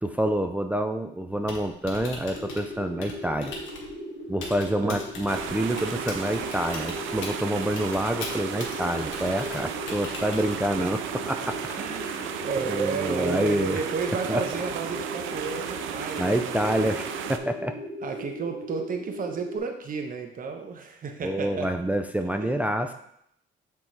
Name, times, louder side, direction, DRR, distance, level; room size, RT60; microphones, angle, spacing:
voice 1, 0.0-3.5 4.3-11.0 11.3-12.3 12.6-13.8 14.3-14.4 16.2-17.8 21.2-22.9, right 1 dB, 5° right, 5 dB, 0.4 m, -27 dB
Typing, 1.3-10.9, left 3 dB, 75° left, 1.5 m, -41 dB
sound 1, 2.3-19.6, left 1 dB, 45° left, 1.6 m, -38 dB
sound 2, 5.3-17.4, right 8 dB, 85° right, 0.5 m, -34 dB
voice 2, 11.8-16.9 18.0-21.7 22.2-22.5, right 5 dB, 45° right, 4 dB, 0.9 m, -32 dB
6.3 x 3.6 x 4.5 m, 0.73 s
cardioid pair, 90°, 20 cm